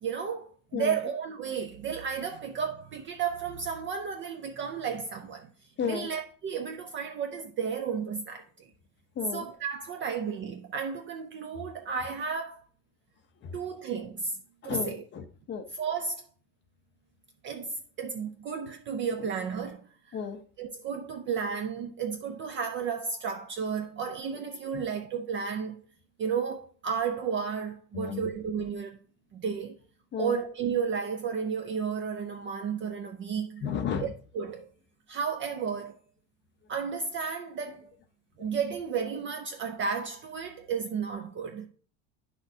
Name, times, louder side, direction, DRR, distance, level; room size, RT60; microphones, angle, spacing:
voice 1, 0.0-5.5 5.8-8.7 9.3-12.6 13.5-14.4 14.6-15.0 15.7-16.2 17.4-20.2 20.6-25.8 26.2-29.0 29.3-29.8 30.2-33.6 34.0-34.7 35.1-36.0 36.7-37.9 38.4-41.7, right 6 dB, 30° right, 0.3 m, -33 dB
voice 2, 5.8-6.1 9.2-9.4 13.4-13.6 14.6-15.6 20.1-20.4 24.7-24.8 27.9-28.2 30.1-30.4 33.6-34.1 38.4-38.5, left 6 dB, 25° left, 0.6 m, -33 dB
9.4 x 6.2 x 2.6 m
cardioid pair, 155°, 45 cm